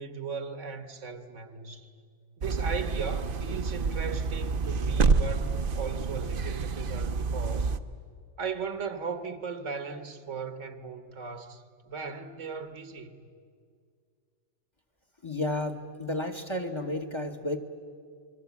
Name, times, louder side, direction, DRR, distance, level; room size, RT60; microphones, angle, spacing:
voice 1, 0.0-1.9 2.4-7.7 8.4-13.1, right 5 dB, 70° right, 1.6 m, -37 dB
sound 1, 2.4-7.8, right 4 dB, 50° right, 0.9 m, -28 dB
voice 2, 15.2-17.6, left 1 dB, 25° left, 1.2 m, -32 dB
27.0 x 22.0 x 8.4 m
omnidirectional pair, 1.3 m